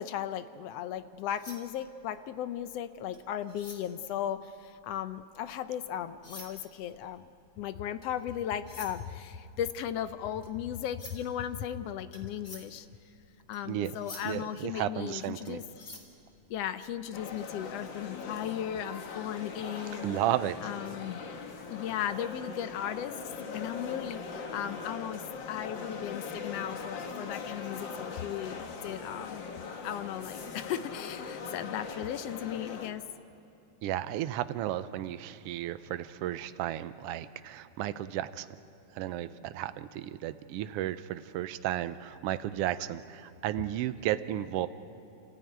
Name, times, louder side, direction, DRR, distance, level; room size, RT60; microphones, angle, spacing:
voice 1, 0.0-7.3 7.6-12.9 13.5-15.6 16.5-20.2 20.6-21.2 21.7-23.2 23.5-29.4 29.8-33.0, left 10 dB, 75° left, 12 dB, 1.6 m, -36 dB
sound 1, 1.0-5.7 6.1-17.1, left 2 dB, 30° left, 2.3 m, -51 dB
voice 2, 14.2-15.6 20.0-20.6 33.8-38.5 38.9-44.7, right 13 dB, 80° right, 12 dB, 1.4 m, -33 dB
sound 2, 17.1-32.9, left 5 dB, 50° left, 1.6 m, -41 dB
29.5 x 14.5 x 9.3 m, 2.7 s
omnidirectional pair, 3.3 m